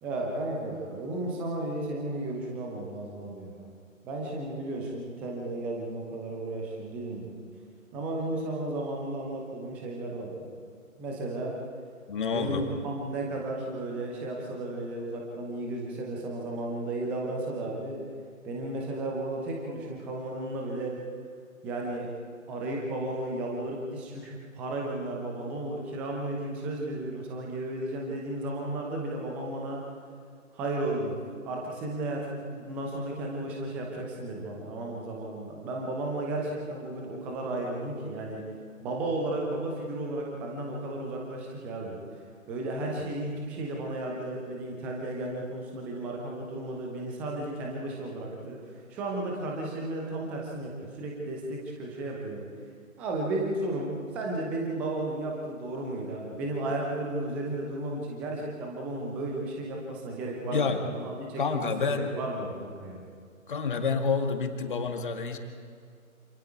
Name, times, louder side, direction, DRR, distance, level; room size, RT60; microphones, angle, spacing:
voice 1, 0.0-3.7 4.0-7.4 7.9-10.5 11.0-11.6 12.3-18.0 18.4-21.0 21.6-22.1 22.5-29.8 30.5-31.1 31.4-38.4 38.8-42.0 42.5-48.6 48.9-50.7 51.0-52.4 53.0-63.1, right 2 dB, 5° right, -1 dB, 0.8 m, -34 dB
voice 2, 12.1-12.7 60.5-60.8 61.4-62.1 63.5-65.4, left 5 dB, 35° left, 5 dB, 2.1 m, -28 dB
27.5 x 27.0 x 4.7 m, 2.2 s
figure-of-eight pair, 145°, 41 cm